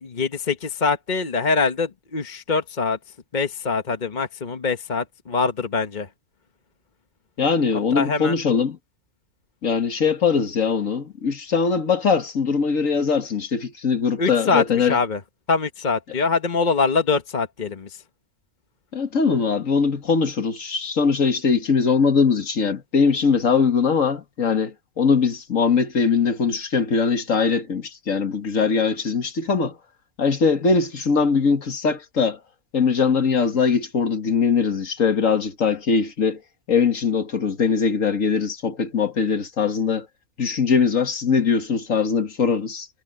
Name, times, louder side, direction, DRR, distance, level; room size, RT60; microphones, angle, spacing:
voice 1, 0.0-3.0 3.3-6.1 7.9-8.4 14.2-15.2 15.5-18.0, left 4 dB, 35° left, 1.1 m, -23 dB
voice 2, 7.4-8.8 9.6-15.0 18.9-29.8 30.2-32.4 32.7-36.4 36.7-40.1 40.4-42.9, left 5 dB, 75° left, 2.1 m, -21 dB
omnidirectional pair, 1.4 m